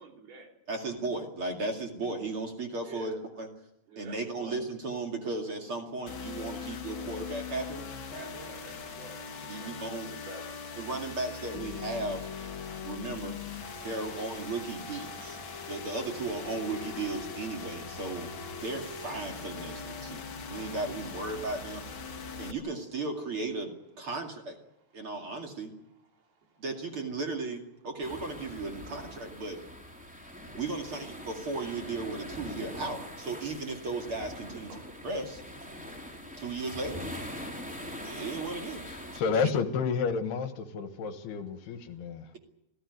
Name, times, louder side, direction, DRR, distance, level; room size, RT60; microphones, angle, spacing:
voice 1, 0.0-0.6 2.8-3.2 3.9-4.6 8.1-10.5 19.3-19.4 19.6-20.7 21.4-21.7 22.0-22.4 28.9-29.0 30.4-30.5 34.6-35.0, right 4 dB, 65° right, 3 dB, 5.2 m, -50 dB
voice 2, 0.7-3.5 4.0-7.9 9.5-10.1 10.8-12.3 12.8-13.4 13.8-15.4 15.6-18.3 18.6-20.2 20.5-21.9 22.4-24.6 24.9-25.7 26.6-29.6 30.6-35.7 36.4-37.1 38.0-38.9, right 3 dB, 40° right, 3 dB, 2.5 m, -36 dB
sound 1, 6.1-22.5, left 5 dB, 50° left, 1.6 m, -41 dB
sound 2, 28.0-39.2, equal, ahead, 3.5 m, -43 dB
voice 3, 38.8-42.4, left 5 dB, 70° left, 10 dB, 3.2 m, -31 dB
25.5 x 16.0 x 9.5 m, 0.84 s
omnidirectional pair, 4.9 m